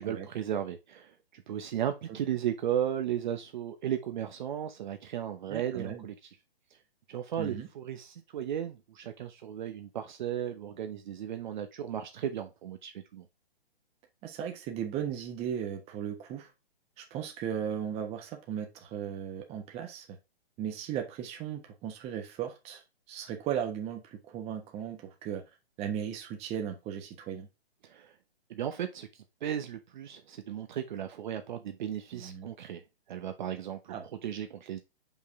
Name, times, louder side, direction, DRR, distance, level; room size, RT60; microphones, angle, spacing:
voice 1, 0.0-6.4 7.1-13.2 27.8-28.1 28.5-32.8 33.1-34.8, right 10 dB, 45° right, 0.9 m, -35 dB
voice 2, 5.5-6.1 7.4-7.7 14.2-16.5 17.0-20.1 20.6-22.8 23.1-25.4 25.8-27.5 32.1-32.5 33.9-34.0, right 9 dB, 20° right, 1.2 m, -36 dB
6.5 x 5.5 x 3.6 m
hypercardioid pair, 145°, 31 cm